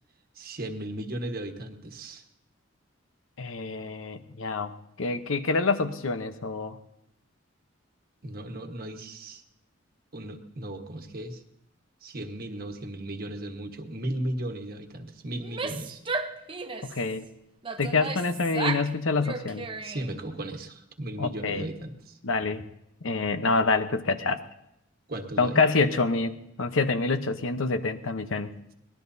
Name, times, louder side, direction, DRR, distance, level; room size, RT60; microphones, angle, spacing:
voice 1, 0.3-2.2 8.2-9.4 10.1-11.4 12.0-16.0 19.8-22.2 25.1-25.6, right 1 dB, 50° right, 4 dB, 1.4 m, -36 dB
voice 2, 3.4-6.8 16.8-17.3 17.8-19.6 21.2-21.7 22.2-22.7 23.0-24.4 25.4-28.5, left 3 dB, 80° left, 9 dB, 0.9 m, -27 dB
Female speech woman speaking / Yell, 15.4-17.0 17.6-18.9 19.2-20.2, right 4 dB, 25° right, 0.8 m, -34 dB
23.5 x 19.0 x 2.8 m, 0.82 s
head